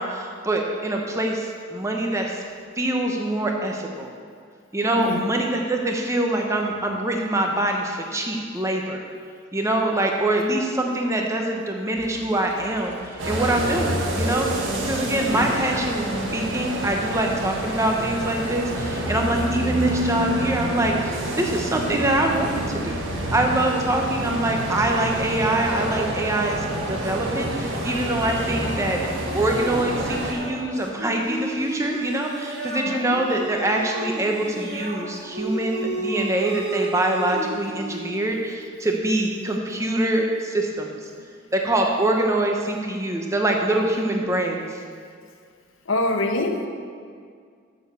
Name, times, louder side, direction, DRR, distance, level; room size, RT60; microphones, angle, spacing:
voice 1, 0.0-2.4 2.8-4.1 4.7-9.0 9.5-14.5 14.9-16.0 16.3-29.1 29.3-41.1 41.5-44.8, right 1 dB, 15° right, 1 dB, 0.8 m, -24 dB
voice 2, 4.9-5.3 8.5-8.6 15.3-15.7 32.8-33.3 38.7-38.8 41.1-41.2 41.9-42.3 42.6-42.7 43.8-44.0 45.8-46.7, left 2 dB, 70° left, 5 dB, 0.9 m, -28 dB
sound 1, 12.0-16.4, left 2 dB, 50° left, 1.5 m, -45 dB
sound 2, 13.2-30.3, right 1 dB, 70° right, 1.6 m, -28 dB
sound 3, 29.2-38.2, right 1 dB, 50° right, 1.5 m, -32 dB
7.0 x 7.0 x 6.8 m, 2.1 s
head